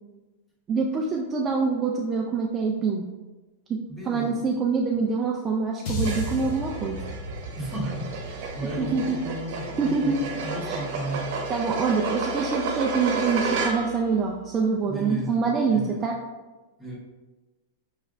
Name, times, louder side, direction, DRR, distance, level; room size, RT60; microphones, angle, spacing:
voice 1, 0.7-3.1 3.7-7.0 8.8-9.2 9.8-10.2 10.6-10.9 11.5-16.2, right 4 dB, 20° right, 0 dB, 0.3 m, -25 dB
voice 2, 3.9-4.4 7.6-11.4 14.9-15.4 15.7-16.0 16.8-17.0, right 1 dB, 10° left, -3 dB, 1.0 m, -34 dB
sound 1, 5.9-10.2, left 1 dB, 50° left, 0.9 m, -35 dB
sound 2, 6.0-14.1, right 4 dB, 55° right, 0.8 m, -31 dB
4.8 x 3.1 x 2.5 m, 1.2 s
supercardioid pair, 145°, 0 cm